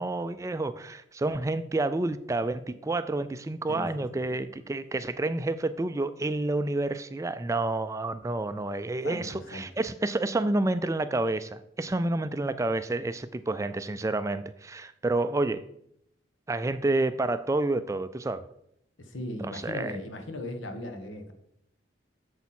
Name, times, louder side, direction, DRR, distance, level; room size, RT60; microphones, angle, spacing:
voice 1, 0.0-15.6 16.5-18.4 19.4-20.0, right 2 dB, 15° right, 12 dB, 0.3 m, -29 dB
voice 2, 3.7-4.2 9.0-9.7 19.0-21.3, left 1 dB, 85° left, 6 dB, 1.4 m, -38 dB
8.2 x 7.0 x 4.3 m, 0.74 s
head